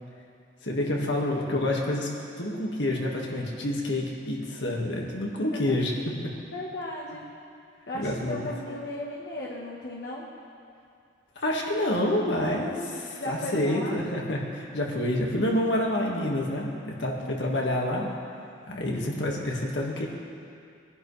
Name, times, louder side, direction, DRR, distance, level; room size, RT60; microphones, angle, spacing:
voice 1, 0.6-2.1 2.4-5.9 6.2-6.3 7.9-8.5 11.4-18.1 18.6-20.1, left 1 dB, 75° left, -1 dB, 1.9 m, -28 dB
voice 2, 6.5-7.3 7.9-10.3 12.7-14.0 17.2-18.0, left 1 dB, 60° left, -5 dB, 1.3 m, -37 dB
21.5 x 10.5 x 3.3 m, 2.4 s
head